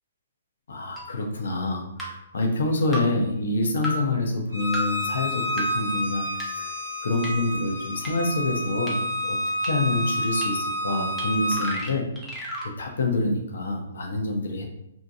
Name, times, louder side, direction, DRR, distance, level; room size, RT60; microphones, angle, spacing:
voice 1, 0.7-6.3 6.5-6.7 7.0-9.4 9.6-12.1 12.6-14.6, left 2 dB, 70° left, 2 dB, 0.6 m, -27 dB
sound 1, 1.0-1.1 2.0-2.1 2.9-3.0 3.8-3.9 4.7-4.8 5.6-5.7 6.4-6.5 7.2-7.3 8.0-8.1 8.9-9.0 9.6-9.7 10.4-10.5 11.2-11.3 11.5-12.7, right 1 dB, ahead, 0.7 m, -32 dB
Bowed string instrument, 4.5-11.8, equal, 75° right, 0.9 m, -29 dB
2.7 x 2.1 x 2.7 m, 0.82 s
figure-of-eight pair, 125°, 0 cm